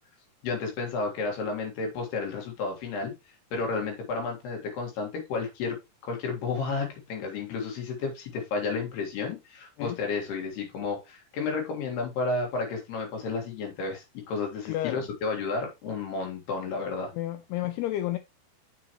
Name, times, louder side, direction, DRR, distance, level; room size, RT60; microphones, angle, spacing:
voice 1, 0.4-3.1 3.5-5.8 6.0-17.1, left 4 dB, 65° left, 3.7 m, -32 dB
voice 2, 14.7-15.1 17.1-18.2, left 14 dB, 85° left, 2.3 m, -31 dB
7.6 x 6.1 x 3.0 m
omnidirectional pair, 5.1 m